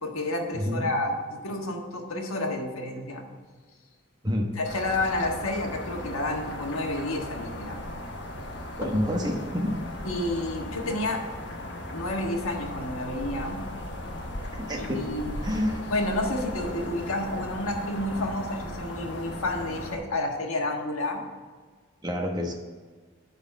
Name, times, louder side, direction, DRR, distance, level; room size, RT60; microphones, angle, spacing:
voice 1, 0.0-3.3 4.5-7.8 8.8-9.0 10.0-11.2 11.9-13.7 14.8-15.4 15.9-21.2, left 1 dB, 90° left, 2 dB, 1.5 m, -30 dB
voice 2, 0.5-0.9 4.2-4.6 8.8-9.8 14.4-15.1 15.4-15.9 22.0-22.5, left 1 dB, 20° right, 2 dB, 1.0 m, -28 dB
sound 1, 4.6-20.0, left 1 dB, 55° left, 1.2 m, -37 dB
10.5 x 4.1 x 7.3 m, 1.5 s
head